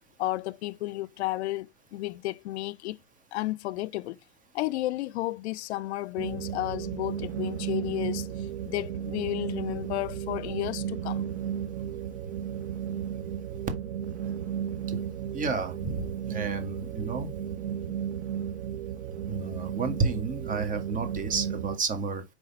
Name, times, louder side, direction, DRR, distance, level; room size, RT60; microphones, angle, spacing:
voice 1, 0.2-3.0 3.3-4.2 4.5-11.2, left 17 dB, 80° left, 0.5 m, -32 dB
sound 1, 6.2-21.8, right 9 dB, 85° right, 1.0 m, -34 dB
voice 2, 15.3-17.3 19.3-22.2, right 4 dB, 25° right, 1.5 m, -31 dB
4.8 x 4.0 x 5.3 m
hypercardioid pair, 120°, 33 cm